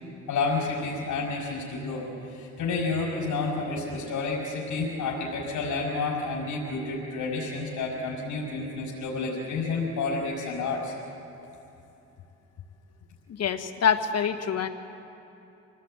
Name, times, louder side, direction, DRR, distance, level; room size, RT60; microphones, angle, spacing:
voice 1, 0.3-10.9, left 3 dB, 75° left, -3 dB, 5.4 m, -30 dB
voice 2, 13.4-14.7, left 7 dB, 55° left, 7 dB, 1.7 m, -25 dB
26.5 x 19.0 x 8.9 m, 2.9 s
cardioid pair, 90°, 30 cm